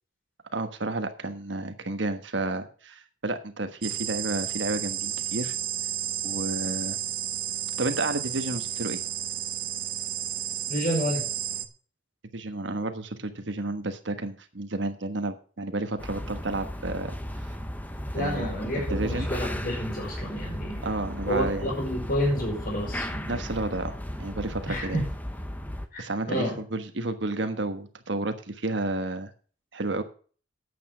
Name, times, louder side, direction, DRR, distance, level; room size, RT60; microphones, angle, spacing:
voice 1, 0.5-5.5 6.2-7.0 7.8-9.0 12.3-17.5 18.2-18.5 18.7-19.3 20.8-21.7 23.3-25.0 26.0-29.3 29.7-30.0, right 2 dB, 65° right, 8 dB, 1.3 m, -31 dB
sound 1, 3.8-11.7, right 11 dB, 45° right, 1.0 m, -32 dB
voice 2, 10.7-11.2 18.1-20.9 21.3-23.4 24.7-25.0 25.9-26.6, equal, 50° left, 0 dB, 5.0 m, -29 dB
sound 2, 16.0-25.9, equal, 10° left, 0.9 m, -35 dB
9.6 x 8.3 x 6.2 m, 0.41 s
head